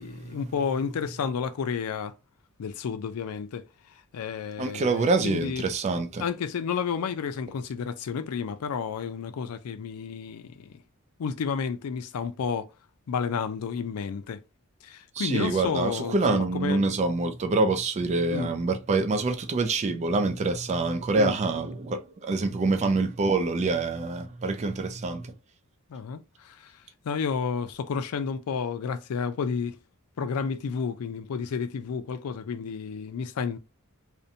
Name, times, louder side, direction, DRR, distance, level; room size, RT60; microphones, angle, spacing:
voice 1, 0.0-2.1 2.6-3.7 4.1-5.7 6.2-10.7 11.2-12.7 13.1-14.4 14.8-16.8 18.3-18.5 21.2-21.4 25.9-26.7 27.0-29.8 30.2-33.6, left 6 dB, 80° left, 0.4 m, -31 dB
voice 2, 4.6-6.2 15.2-25.3, right 3 dB, 30° right, 0.3 m, -26 dB
2.6 x 2.1 x 2.6 m
head